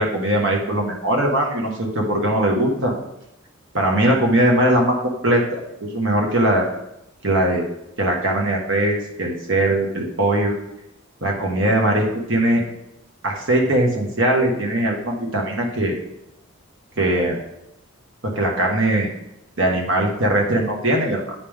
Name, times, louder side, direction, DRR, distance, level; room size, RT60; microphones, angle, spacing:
voice 1, 0.0-2.9 3.7-6.6 7.2-7.7 8.0-10.5 11.2-12.6 13.2-15.9 17.0-17.4 18.2-19.1 19.6-21.3, right 1 dB, 60° right, 0 dB, 1.5 m, -20 dB
8.8 x 5.4 x 3.6 m, 0.84 s
head